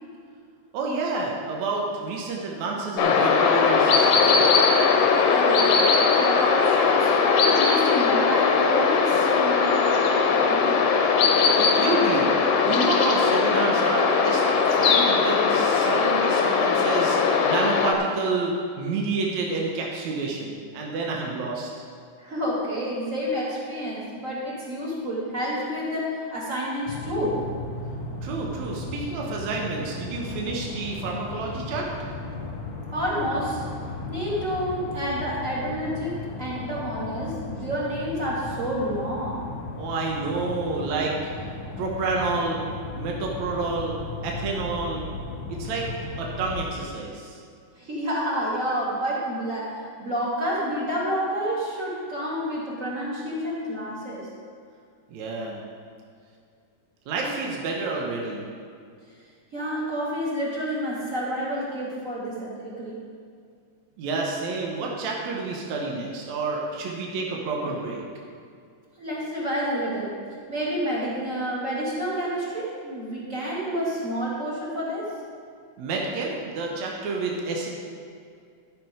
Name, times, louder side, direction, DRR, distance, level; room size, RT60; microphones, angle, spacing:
voice 1, 0.7-4.5 11.6-12.4 12.7-21.7 28.2-31.9 39.8-41.3 41.8-42.6 43.0-45.1 45.6-45.9 46.2-47.4 55.1-55.6 57.1-58.4 64.0-68.0 75.8-77.7, right 3 dB, 75° right, -1 dB, 2.3 m, -29 dB
sound 1, 3.0-17.9, left 5 dB, 70° left, 1.6 m, -20 dB
voice 2, 5.3-5.8 6.2-10.8 12.6-12.7 22.2-27.4 32.9-33.7 34.1-39.5 47.8-54.3 59.5-63.0 69.0-70.1 70.5-75.1, equal, 25° right, -7 dB, 2.5 m, -29 dB
sound 2, 26.9-46.7, left 2 dB, 50° left, 1.5 m, -36 dB
13.5 x 6.3 x 5.0 m, 2.3 s
omnidirectional pair, 3.4 m